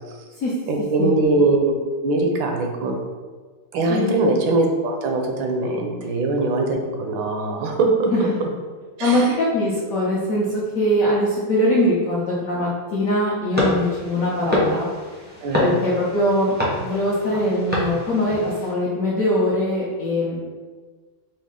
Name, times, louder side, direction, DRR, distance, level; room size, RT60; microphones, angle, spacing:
voice 1, 0.7-1.7 2.0-3.0 3.7-8.1 9.0-9.3 15.4-15.8, right 2 dB, 80° right, 2 dB, 1.4 m, -21 dB
voice 2, 3.9-4.2 8.1-8.2 9.0-10.5 10.7-14.9 15.6-16.5 16.8-20.6, left 1 dB, 70° left, -6 dB, 0.8 m, -22 dB
sound 1, 13.5-18.7, left 1 dB, 15° right, 0.4 m, -26 dB
5.2 x 2.0 x 3.6 m, 1.4 s
omnidirectional pair, 2.1 m